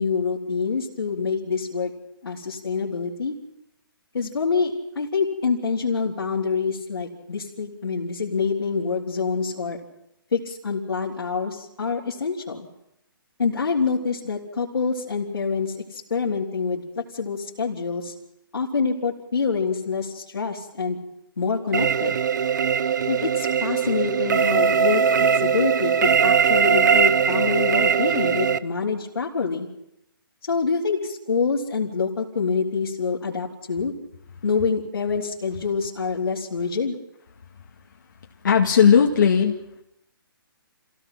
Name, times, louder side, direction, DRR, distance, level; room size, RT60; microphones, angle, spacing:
voice 1, 0.0-1.9 2.2-3.4 4.1-9.8 10.3-12.7 13.4-18.1 18.5-21.0 21.4-22.2 23.1-29.7 30.4-33.9 34.4-37.0, left 5 dB, 85° left, -6 dB, 3.9 m, -26 dB
sound 1, 21.7-28.6, right 7 dB, 55° right, 0.8 m, -20 dB
voice 2, 38.4-39.8, left 7 dB, 55° left, 0 dB, 2.1 m, -17 dB
28.0 x 17.0 x 6.0 m, 0.82 s
hypercardioid pair, 170°, 12 cm